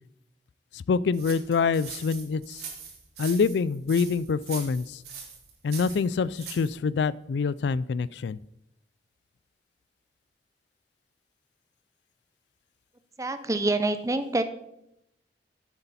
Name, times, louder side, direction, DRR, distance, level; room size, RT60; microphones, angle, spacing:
voice 1, 0.7-2.6 3.2-5.0 5.6-8.4, left 5 dB, 80° left, 20 dB, 0.3 m, -26 dB
sound 1, 1.1-6.7, right 6 dB, 70° right, 3.2 m, -42 dB
voice 2, 13.2-14.4, right 2 dB, 20° right, 10 dB, 0.6 m, -26 dB
14.5 x 8.1 x 4.2 m, 0.83 s
head